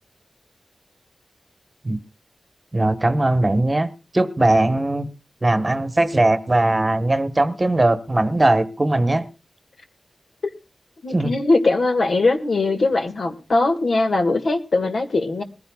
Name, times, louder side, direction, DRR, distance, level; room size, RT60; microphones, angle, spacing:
voice 1, 2.7-5.1 5.4-9.2 11.1-11.4, right 2 dB, 25° right, 1.2 m, -19 dB
voice 2, 11.0-15.4, left 2 dB, 65° left, 1.9 m, -20 dB
21.5 x 15.0 x 2.3 m
wide cardioid pair, 105°, 0 cm